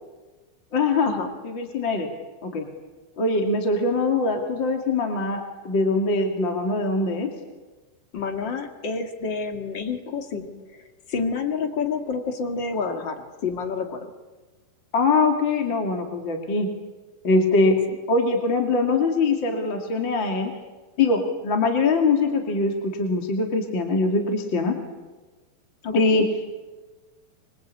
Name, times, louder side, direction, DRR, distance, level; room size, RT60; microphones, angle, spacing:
voice 1, 0.7-1.1 1.4-2.1 2.4-2.7 3.2-7.3 14.9-16.7 17.2-17.8 18.1-20.5 21.0-24.8 25.9-26.3, left 3 dB, 35° left, 3 dB, 2.3 m, -22 dB
voice 2, 8.1-14.0 25.8-26.2, left 5 dB, 70° left, 5 dB, 1.1 m, -29 dB
26.0 x 24.5 x 8.5 m, 1.2 s
omnidirectional pair, 5.6 m